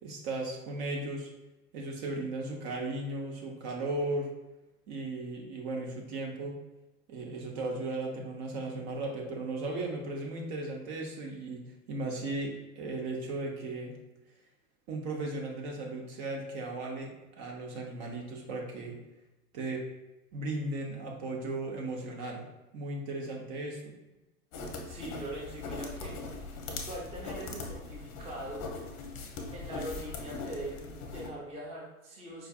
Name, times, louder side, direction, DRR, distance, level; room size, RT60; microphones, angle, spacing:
voice 1, 0.0-1.3 1.7-4.3 4.9-6.6 7.1-13.9 14.9-19.0 19.5-19.8 20.3-22.4 22.7-23.9, right 2 dB, 50° right, 0 dB, 0.9 m, -36 dB
sound 1, 24.5-31.3, left 3 dB, 35° left, 0.6 m, -40 dB
voice 2, 24.8-26.1 26.9-28.7 29.5-32.5, right 1 dB, 15° right, -4 dB, 0.7 m, -42 dB
4.7 x 2.4 x 2.3 m, 1.0 s
hypercardioid pair, 100°, 44 cm